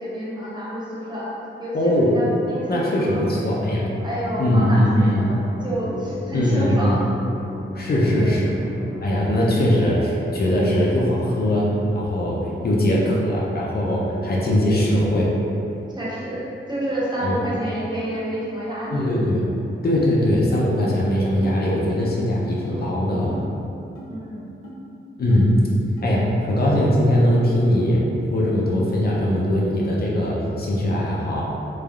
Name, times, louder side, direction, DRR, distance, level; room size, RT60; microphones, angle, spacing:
voice 1, 0.0-1.3 1.6-3.5 4.0-7.1 8.1-8.4 15.9-19.1 24.1-24.5, right 1 dB, 20° right, -8 dB, 0.5 m, -29 dB
voice 2, 1.7-2.2 2.7-3.8 4.4-5.2 6.3-7.0 7.8-8.5 9.0-11.7 11.9-15.3 17.2-17.4 18.9-19.5 19.8-23.4 25.2-25.5 26.0-28.0 28.3-31.4, left 1 dB, 50° left, -5 dB, 0.4 m, -20 dB
sound 1, 3.5-17.0, left 1 dB, 25° left, 1.1 m, -37 dB
sound 2, 17.4-17.6 18.1-18.3 18.8-19.0 19.8-19.9 20.6-20.8 21.3-21.5 22.0-22.1 22.6-22.7 23.3-23.4 24.0-24.1 24.6-24.8 25.3-25.4 26.0-26.1 26.7-26.8 27.3-27.4, right 2 dB, 90° left, 0.6 m, -42 dB
3.2 x 2.2 x 2.3 m, 2.6 s
wide cardioid pair, 140°, 21 cm